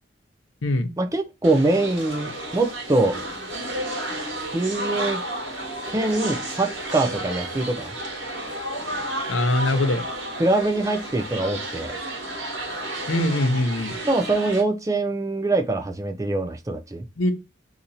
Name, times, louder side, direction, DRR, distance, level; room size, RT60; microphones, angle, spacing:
voice 1, 1.0-3.2 4.5-5.2 5.9-7.9 10.4-11.9 14.1-17.0, right 2 dB, 15° right, 0.4 m, -23 dB
sound 1, 1.4-14.6, right 1 dB, 80° right, 1.3 m, -32 dB
voice 2, 9.3-10.0 13.1-13.9 17.2-17.3, left 1 dB, 90° left, 0.7 m, -22 dB
2.8 x 2.6 x 4.0 m
head